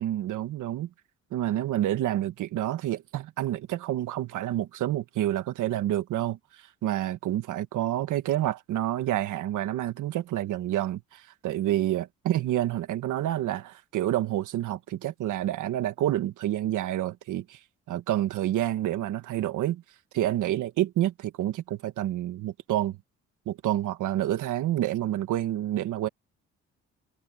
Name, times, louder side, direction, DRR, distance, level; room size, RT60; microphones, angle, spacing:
voice 1, 0.0-0.9 1.3-6.4 6.8-17.6 17.9-19.8 20.1-23.0 23.5-26.1, right 13 dB, 80° right, 1.5 m, -28 dB
cardioid pair, 90°, 30 cm